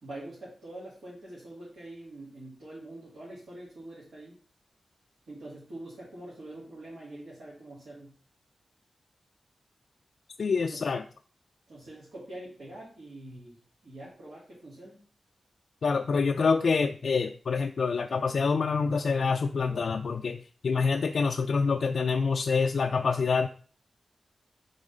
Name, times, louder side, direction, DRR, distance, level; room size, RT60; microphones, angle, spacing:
voice 1, 0.0-4.4 5.3-8.2 10.7-10.9 11.7-13.6 13.8-15.0, right 1 dB, 80° right, -8 dB, 2.2 m, -45 dB
voice 2, 10.4-11.0 15.8-20.4 20.6-23.5, left 5 dB, 70° left, 5 dB, 0.3 m, -26 dB
4.9 x 3.9 x 5.4 m, 0.42 s
wide cardioid pair, 90°, 0 cm